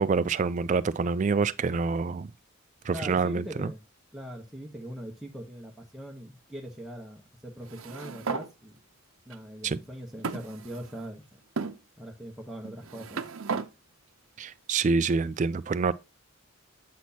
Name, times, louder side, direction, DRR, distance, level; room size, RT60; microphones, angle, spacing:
voice 1, 0.0-2.3 2.8-3.7 9.6-9.8 14.4-15.9, right 4 dB, 35° right, 0.3 m, -26 dB
voice 2, 2.9-3.8 4.1-8.8 9.3-11.4 12.0-13.2, equal, ahead, 1.0 m, -41 dB
sound 1, 7.6-8.5 9.3-9.4 10.2-11.1 11.6-11.8 12.6-13.7, right 5 dB, 80° right, 0.7 m, -34 dB
8.4 x 6.1 x 2.8 m
head